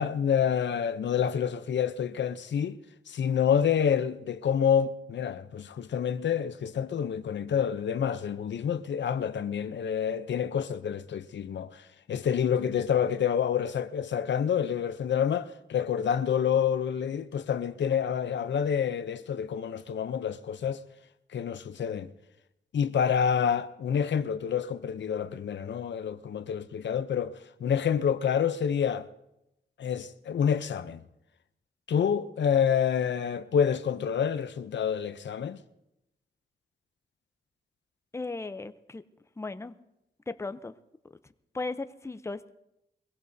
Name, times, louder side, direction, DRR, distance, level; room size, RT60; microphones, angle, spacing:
voice 1, 0.0-2.8 3.1-20.8 21.3-22.1 22.7-29.1 29.8-31.0 31.9-35.6, left 8 dB, 85° left, 0.6 m, -28 dB
voice 2, 38.1-39.0 39.4-39.7 40.3-40.7 41.5-42.5, left 3 dB, 15° left, 0.6 m, -36 dB
22.5 x 16.5 x 2.7 m
cardioid pair, 75°, 18 cm